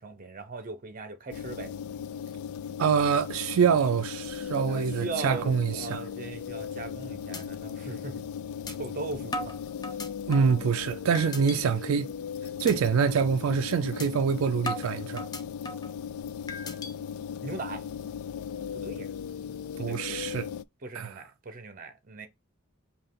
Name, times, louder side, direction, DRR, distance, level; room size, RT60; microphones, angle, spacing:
voice 1, 0.0-1.7 4.7-8.2 8.8-9.4 9.9-10.0 17.4-17.8 18.7-19.1 19.8-20.2 20.8-22.3, right 3 dB, 40° right, 0.7 m, -39 dB
sound 1, 1.3-20.6, left 7 dB, 85° left, 0.3 m, -37 dB
voice 2, 2.8-6.0 10.3-12.1 12.6-15.2 19.8-20.5 20.9-21.2, right 6 dB, 75° right, 0.4 m, -25 dB
sound 2, 7.3-7.4 7.8-7.9 8.7-8.8 9.3-10.6 11.1-11.6 12.0-12.2 12.7-12.8 13.2-13.4 14.0-14.1 14.7-15.9 16.5-16.9, left 1 dB, 20° left, 0.5 m, -37 dB
5.4 x 2.4 x 3.7 m
head